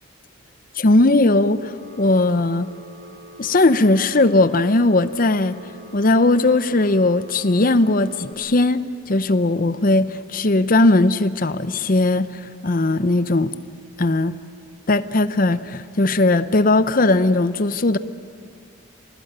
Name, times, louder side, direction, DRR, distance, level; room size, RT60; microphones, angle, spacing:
voice 1, 0.8-2.7 3.4-5.6 5.9-13.5 14.0-14.3 14.9-18.0, left 2 dB, 45° left, 0.8 m, -18 dB
Telephone, 1.6-8.3, right 1 dB, 45° right, 3.4 m, -44 dB
26.5 x 18.5 x 8.9 m
head